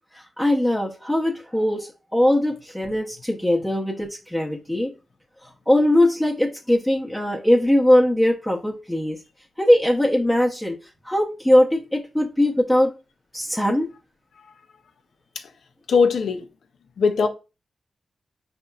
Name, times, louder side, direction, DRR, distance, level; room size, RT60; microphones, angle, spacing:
voice 1, 0.1-4.9 5.7-9.2 9.6-10.8 11.0-12.9 13.3-13.9, left 1 dB, 10° left, 0.7 m, -20 dB
voice 2, 15.9-16.4 17.0-17.3, left 5 dB, 75° left, 0.5 m, -19 dB
4.2 x 2.8 x 2.3 m
cardioid pair, 50°, 0 cm